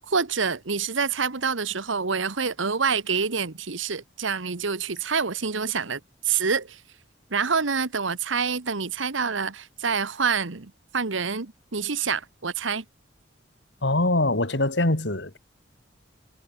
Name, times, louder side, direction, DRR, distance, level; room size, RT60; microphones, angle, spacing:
voice 1, 0.1-6.0 6.2-6.8 7.3-12.8, right 5 dB, 85° right, 1.3 m, -27 dB
voice 2, 13.8-15.4, left 2 dB, 70° left, 3.0 m, -23 dB
head